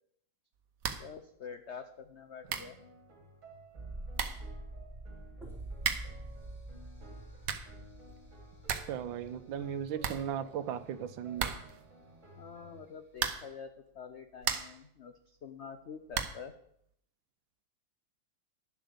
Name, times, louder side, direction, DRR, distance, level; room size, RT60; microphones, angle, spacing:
sound 1, 0.8-1.2 1.4-1.5 2.2-2.3 2.5-2.8 3.8-3.9 4.1-4.5 5.8-6.2 7.2-7.8 8.2-8.3 8.5-9.0 9.3-9.4 9.6-9.7 10.0-10.8 11.4-11.9 13.1-13.6 14.1-14.9 16.1-16.5, right 7 dB, 55° right, 1.1 m, -36 dB
voice 1, 1.0-2.8 12.4-16.5, left 6 dB, 75° left, 8 dB, 0.6 m, -47 dB
sound 2, 2.4-12.9, right 2 dB, 40° right, 2.4 m, -56 dB
sound 3, 3.8-10.6 10.9-11.0, right 2 dB, ahead, 3.3 m, -46 dB
voice 2, 8.9-11.6, right 9 dB, 80° right, 12 dB, 1.5 m, -37 dB
10.5 x 7.4 x 6.9 m, 0.71 s
omnidirectional pair, 2.1 m